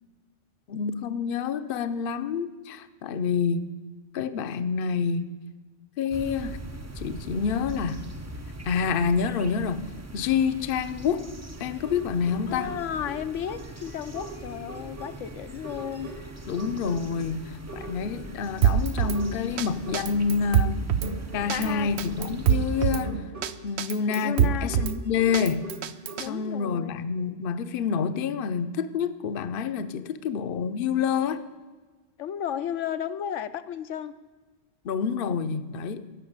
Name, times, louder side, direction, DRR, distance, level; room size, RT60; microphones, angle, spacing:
voice 1, 0.7-3.7 4.1-5.3 6.0-6.6 7.0-8.1 8.6-9.9 10.1-11.3 11.6-12.8 16.5-20.9 21.3-23.2 23.6-25.7 26.2-31.4 34.8-36.1, left 6 dB, 55° left, 12 dB, 0.8 m, -28 dB
sound 1, 6.1-23.0, right 1 dB, 20° right, 0.5 m, -41 dB
sound 2, 11.5-17.4 17.7-18.5 18.9-20.5 21.0-26.4, right 2 dB, 50° right, 1.7 m, -41 dB
voice 2, 12.5-16.1 21.5-21.9 24.2-24.7 26.2-26.9 32.2-34.1, left 9 dB, 85° left, 11 dB, 1.0 m, -33 dB
Drum kit, 18.6-19.2 19.6-19.7 19.9-21.1 21.5-21.7 22.0-23.0 23.4-23.5 23.8-24.9 25.3-26.3, right 9 dB, 70° right, 0.8 m, -23 dB
14.5 x 5.8 x 8.6 m, 1.3 s
omnidirectional pair, 1.2 m